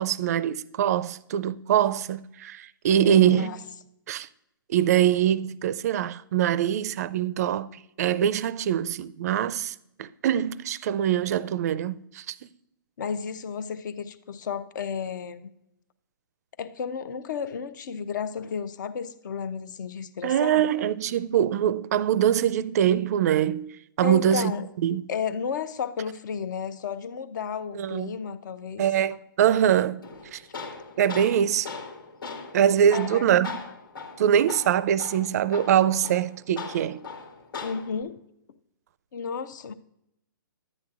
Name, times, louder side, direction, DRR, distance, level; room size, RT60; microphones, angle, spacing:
voice 1, 0.0-3.5 4.1-4.3 4.7-7.7 8.0-12.4 20.2-23.7 24.0-24.5 24.8-25.0 27.7-28.2 28.8-30.0 30.3-30.4 31.0-31.7 32.5-33.6 34.2-37.0, right 10 dB, 45° right, 0.4 m, -23 dB
voice 2, 3.0-3.6 13.0-15.5 16.6-20.7 24.0-24.7 25.1-28.8 32.9-33.3 37.6-38.2 39.1-39.7, left 6 dB, 60° left, 0.6 m, -32 dB
Tools, 30.0-38.0, left 4 dB, 80° left, 1.8 m, -40 dB
10.5 x 9.0 x 2.4 m
hypercardioid pair, 145°, 12 cm